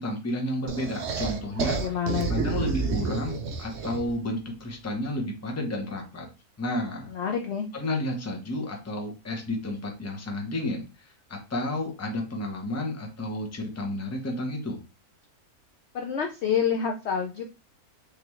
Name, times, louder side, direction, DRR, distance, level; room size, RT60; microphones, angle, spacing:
voice 1, 0.0-1.8 2.3-6.3 6.6-7.1 7.7-10.8 11.3-14.8, left 1 dB, 15° left, 2 dB, 0.6 m, -31 dB
sound 1, 0.7-4.2, right 5 dB, 60° right, 0.7 m, -30 dB
voice 2, 1.8-2.5 7.1-7.7 15.9-17.4, left 7 dB, 65° left, 3 dB, 0.7 m, -28 dB
3.7 x 3.3 x 3.0 m, 0.31 s
omnidirectional pair, 1.6 m